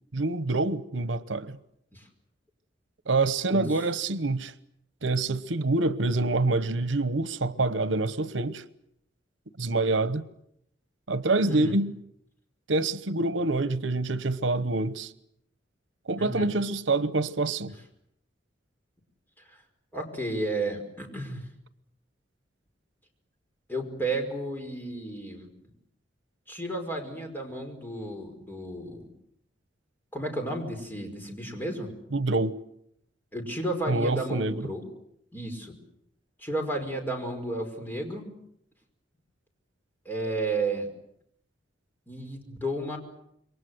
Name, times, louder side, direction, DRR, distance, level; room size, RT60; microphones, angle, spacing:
voice 1, 0.1-1.6 3.1-4.5 5.0-8.6 9.6-10.2 11.1-11.9 12.7-15.1 16.1-17.7 32.1-32.5 33.9-34.5, right 2 dB, 90° right, 1.0 m, -26 dB
voice 2, 3.5-3.9 11.5-11.8 16.2-16.5 19.5-19.6 19.9-21.4 23.7-25.5 26.5-29.1 30.1-31.9 33.3-34.8 35.3-35.7 36.4-38.3 40.1-40.9 42.1-43.0, right 2 dB, 10° left, 5.3 m, -32 dB
27.5 x 23.0 x 8.0 m
head